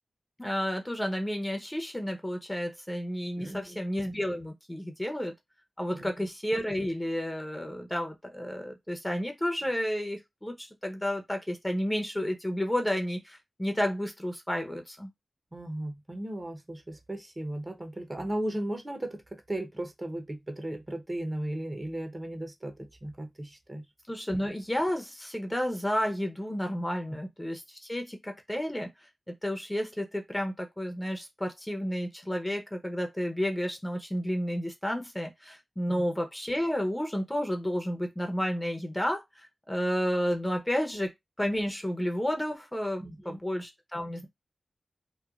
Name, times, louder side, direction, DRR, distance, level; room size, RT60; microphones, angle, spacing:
voice 1, 0.4-5.3 5.8-15.1 24.1-28.9 29.3-39.2 39.7-41.1 41.4-44.3, equal, 15° left, 0.7 m, -31 dB
voice 2, 3.4-3.8 5.9-6.1 15.5-23.8 35.9-36.0 43.0-43.4, right 1 dB, 30° right, 0.7 m, -36 dB
3.0 x 2.1 x 2.3 m
cardioid pair, 45°, 0 cm